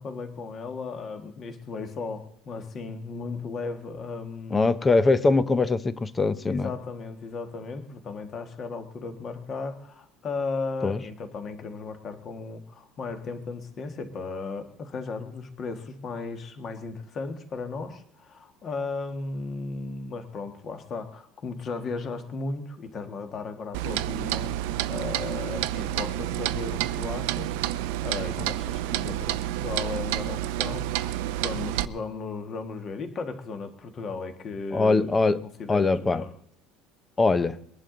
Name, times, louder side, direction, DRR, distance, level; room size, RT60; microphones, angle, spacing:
voice 1, 0.0-4.7 6.5-35.1 35.6-36.3, left 4 dB, 30° left, 8 dB, 1.6 m, -36 dB
voice 2, 4.5-6.7 10.8-11.0 28.4-28.5 34.7-35.4 35.7-36.2 37.2-37.6, left 3 dB, 15° left, 16 dB, 0.6 m, -22 dB
Clock, 23.7-31.9, right 14 dB, 90° right, 0.6 m, -29 dB
22.0 x 11.0 x 3.9 m, 0.67 s
cardioid pair, 170°, 0 cm